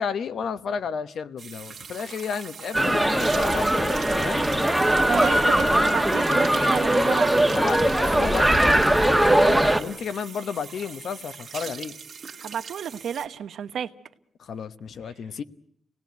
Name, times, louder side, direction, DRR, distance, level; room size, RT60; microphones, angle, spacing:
voice 1, 0.0-4.5 7.5-11.9 14.4-15.4, left 6 dB, 65° left, 1.1 m, -32 dB
sound 1, 1.4-13.3, right 6 dB, 50° right, 1.9 m, -41 dB
sound 2, 2.7-9.8, right 1 dB, 5° right, 1.2 m, -20 dB
voice 2, 5.1-7.5 12.4-13.9, right 8 dB, 75° right, 1.2 m, -31 dB
27.5 x 18.5 x 9.3 m
wide cardioid pair, 150°, 0 cm